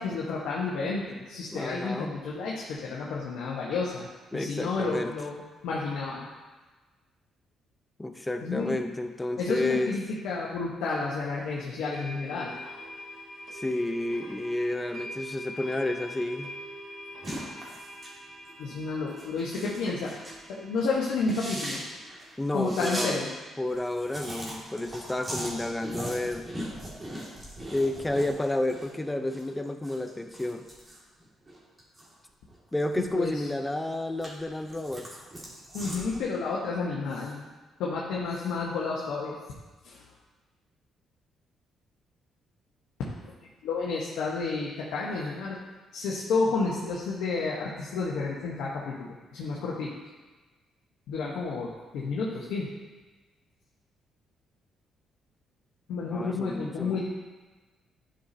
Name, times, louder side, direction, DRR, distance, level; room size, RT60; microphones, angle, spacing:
voice 1, 0.0-4.1 4.3-6.2 8.4-8.7 9.4-12.5 18.6-20.1 20.5-21.8 22.5-23.3 33.1-33.4 35.7-37.5 37.8-39.4 39.8-40.0 43.6-45.6 45.9-49.9 51.1-52.7 55.9-57.1, left 4 dB, 85° left, -5 dB, 1.1 m, -31 dB
voice 2, 1.5-2.1 4.3-5.1 8.0-9.9 13.5-16.5 22.4-23.1 23.6-26.5 27.7-30.6 32.7-35.1 56.1-57.1, left 1 dB, 10° left, 7 dB, 0.6 m, -31 dB
sound 1, 10.9-11.0 11.9-22.0, left 1 dB, 70° right, 2.1 m, -44 dB
sound 2, 17.2-18.2 18.5-18.6 19.1-20.4 20.8-20.9 21.2-23.1 23.4-23.5 23.7-28.9 29.2-32.1 32.5-33.5 33.9-36.2, right 1 dB, 25° right, 2.2 m, -39 dB
10.5 x 5.6 x 2.8 m, 1.3 s
cardioid pair, 90°, 0 cm